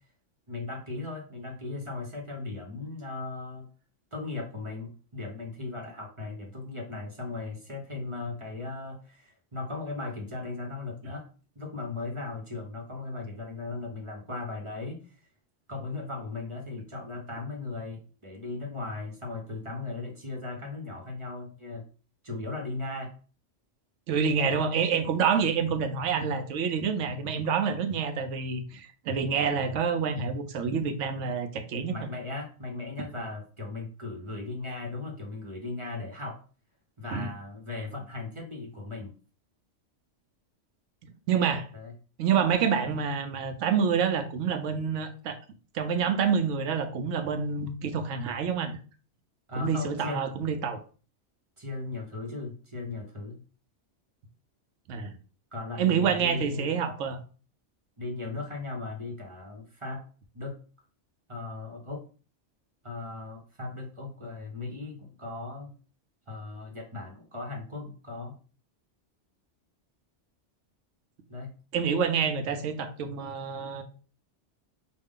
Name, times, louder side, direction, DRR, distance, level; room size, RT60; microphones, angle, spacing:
voice 1, 0.5-3.7 4.1-11.3 11.5-15.0 15.7-21.9 22.2-23.1 24.5-24.6 31.9-36.4 37.0-39.1 41.7-41.9 49.5-50.3 51.6-53.4 55.5-56.9 58.0-60.0 60.3-60.6 61.3-62.0 62.8-65.7 66.3-68.3 71.3-71.5, left 3 dB, 30° right, 1 dB, 0.9 m, -37 dB
voice 2, 24.1-32.1 37.1-37.3 41.3-41.7 42.2-45.4 45.7-48.8 49.6-50.8 54.9-55.2 55.8-57.2 71.7-73.8, right 6 dB, 80° right, 8 dB, 1.0 m, -27 dB
5.2 x 2.4 x 3.6 m, 0.38 s
omnidirectional pair, 1.2 m